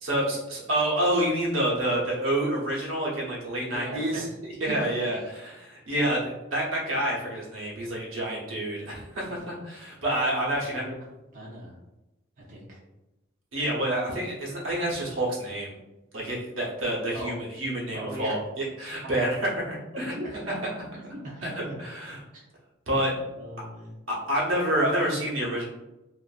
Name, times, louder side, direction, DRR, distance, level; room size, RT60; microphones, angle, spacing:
voice 1, 0.0-10.8 13.5-15.7 16.1-20.1 21.9-22.2 22.9-23.1 24.1-25.7, right 1 dB, 80° right, -4 dB, 0.9 m, -28 dB
voice 2, 3.6-4.2 4.7-5.4 6.1-6.3 9.3-9.5 10.5-10.9 11.3-11.7 12.4-12.8 16.2-16.4 17.1-17.4 17.9-18.3 19.0-19.1 20.0-20.6 20.9-21.7 22.3-22.4 23.1-24.0, right 1 dB, 40° right, -5 dB, 0.5 m, -39 dB
2.5 x 2.5 x 2.3 m, 0.97 s
head